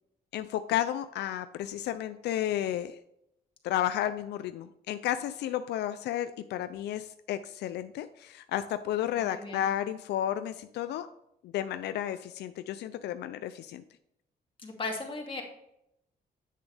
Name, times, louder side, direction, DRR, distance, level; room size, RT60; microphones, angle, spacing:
voice 1, 0.3-3.0 3.6-11.1 11.4-13.8, left 11 dB, 85° left, 11 dB, 0.4 m, -32 dB
voice 2, 9.2-9.6 14.6-15.4, left 3 dB, 30° left, 0 dB, 2.3 m, -37 dB
8.5 x 7.0 x 3.3 m, 0.80 s
cardioid pair, 90°, 17 cm